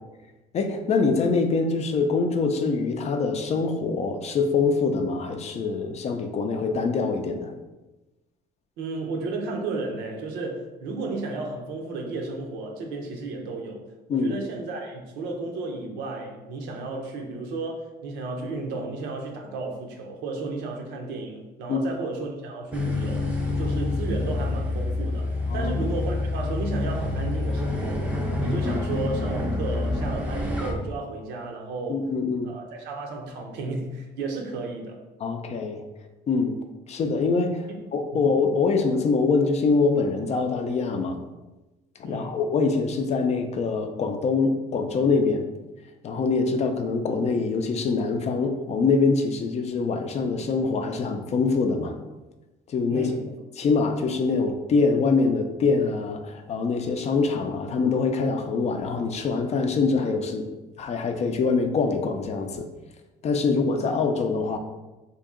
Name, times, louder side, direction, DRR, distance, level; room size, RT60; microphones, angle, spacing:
voice 1, 0.5-7.5 14.1-14.3 21.7-21.8 25.5-25.7 31.9-32.5 35.2-35.8 36.3-36.6 36.9-41.2 42.0-45.4 46.0-51.9 52.7-53.1 53.6-60.4 60.8-62.7 63.2-64.6, left 4 dB, 40° left, 6 dB, 0.4 m, -24 dB
voice 2, 8.8-13.8 14.1-28.1 28.4-32.1 32.4-35.0 37.7-37.8 38.1-38.3 42.0-42.4 52.9-53.3, right 3 dB, 85° right, 1 dB, 0.7 m, -33 dB
sound 1, 22.7-30.7, left 2 dB, 5° right, 0.5 m, -27 dB
2.9 x 2.7 x 3.7 m, 1.1 s
cardioid pair, 110°, 17 cm